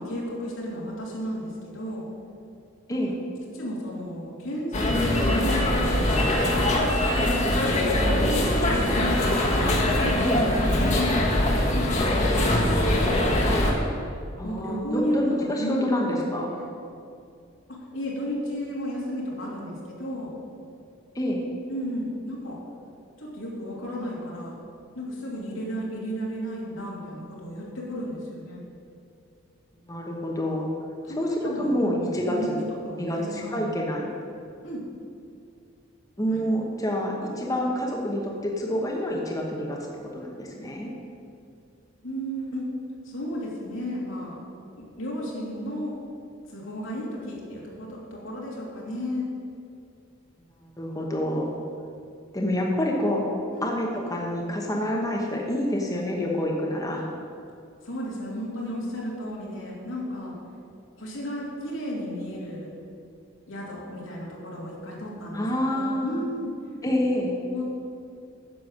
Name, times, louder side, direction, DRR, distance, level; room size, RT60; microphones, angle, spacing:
voice 1, 0.0-2.1 2.9-3.0 3.5-6.3 7.5-9.2 9.6-13.4 14.4-16.8 17.7-20.4 21.7-22.6 23.2-24.5 24.9-28.6 31.0-32.0 32.3-32.5 32.8-33.7 34.6-34.8 36.3-36.4 42.0-42.7 43.0-44.4 44.8-45.9 46.5-49.3 53.5-53.7 57.8-60.4 61.0-62.7 63.5-66.5 67.5-67.6, equal, 85° left, -4 dB, 2.7 m, -33 dB
sound 1, 4.7-13.7, left 1 dB, 35° left, 1.5 m, -22 dB
voice 2, 14.4-16.5 21.1-21.4 29.9-30.7 31.2-32.6 33.0-34.0 36.2-39.8 40.1-40.9 50.8-51.5 52.3-53.2 53.6-57.1 65.3-66.2 66.8-67.4, left 1 dB, 15° left, -1 dB, 1.1 m, -27 dB
9.6 x 6.9 x 6.5 m, 2.5 s
head